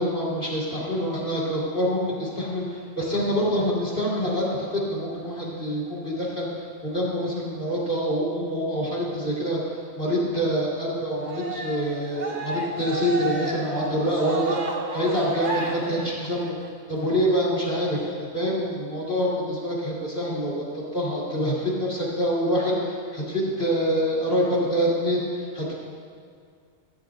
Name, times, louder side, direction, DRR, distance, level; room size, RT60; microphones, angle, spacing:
voice 1, 0.0-2.6 3.0-6.5 6.8-9.6 9.9-14.6 14.9-16.6 16.9-18.0 18.3-25.3 25.5-25.7, equal, 55° left, -7 dB, 2.8 m, -26 dB
Cheering, 11.2-16.7, right 3 dB, 45° right, 0.9 m, -32 dB
16.0 x 8.8 x 2.6 m, 2.2 s
omnidirectional pair, 1.2 m